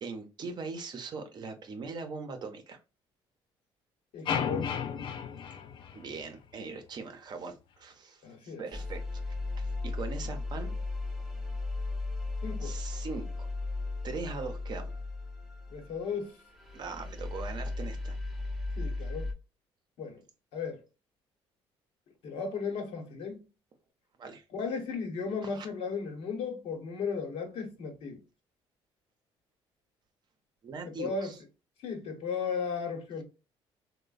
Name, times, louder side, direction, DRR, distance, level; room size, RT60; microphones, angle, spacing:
voice 1, 0.0-2.8 5.9-10.7 12.6-13.5 14.0-15.0 16.7-18.2 24.2-24.4 25.4-25.7 30.6-31.4, right 4 dB, 45° right, 0.6 m, -41 dB
voice 2, 4.1-4.8 8.2-8.6 12.4-12.7 15.7-16.4 18.8-19.3 20.0-20.2 20.5-20.8 22.2-23.5 24.5-28.2 30.9-31.3 31.8-33.2, left 5 dB, 75° left, 1.0 m, -35 dB
sound 1, 4.3-6.5, left 7 dB, 55° left, 0.4 m, -34 dB
sound 2, 8.7-19.3, left 2 dB, 5° right, 0.6 m, -36 dB
3.1 x 2.1 x 2.3 m
cardioid pair, 105°, 10 cm